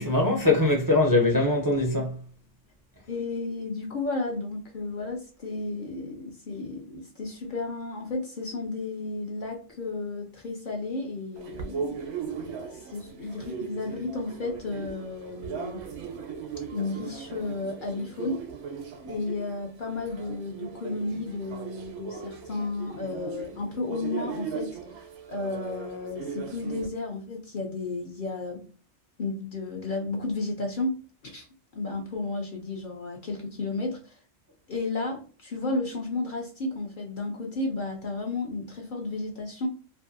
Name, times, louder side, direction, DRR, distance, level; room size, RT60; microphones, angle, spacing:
voice 1, 0.0-2.2, left 2 dB, 30° right, 0.3 m, -22 dB
voice 2, 3.1-12.0 12.8-15.8 16.7-18.4 19.0-24.8 25.3-28.6 29.2-31.0 31.2-31.5 31.7-34.2 34.7-39.7, left 3 dB, 55° left, 0.6 m, -33 dB
sound 1, 11.4-26.9, right 6 dB, 70° right, 0.9 m, -38 dB
2.6 x 2.5 x 2.5 m
omnidirectional pair, 1.3 m